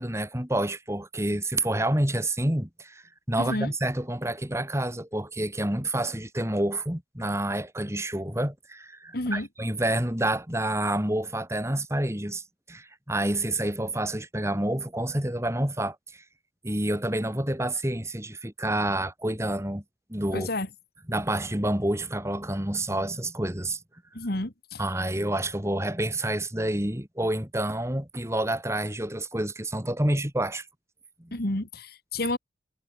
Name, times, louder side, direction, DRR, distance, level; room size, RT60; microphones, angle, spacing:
voice 1, 0.0-12.4 12.7-16.2 16.6-19.8 20.1-20.5 21.1-23.8 24.8-30.7 31.2-31.3, right 1 dB, 15° right, 3.2 m, -28 dB
voice 2, 3.4-3.7 9.1-9.5 20.3-20.7 24.1-24.8 31.3-32.4, left 1 dB, 55° left, 2.4 m, -30 dB
head